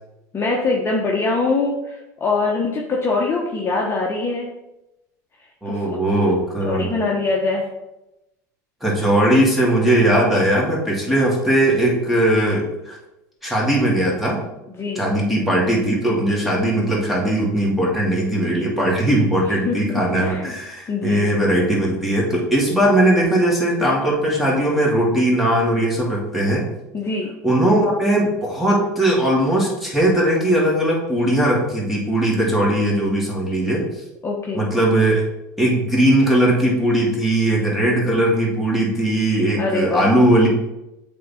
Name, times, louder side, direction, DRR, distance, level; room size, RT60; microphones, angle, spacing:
voice 1, 0.3-4.5 5.6-5.9 6.6-7.7 14.7-15.1 19.6-20.6 20.9-21.3 26.9-27.3 34.2-34.7 39.6-40.1, left 3 dB, 25° left, -2 dB, 1.1 m, -23 dB
voice 2, 5.6-6.9 8.8-13.0 13.4-14.5 14.9-26.7 27.4-34.0 34.5-35.2 35.6-40.5, right 1 dB, ahead, -4 dB, 2.3 m, -19 dB
7.4 x 3.6 x 4.3 m, 0.94 s
hypercardioid pair, 90°, 10 cm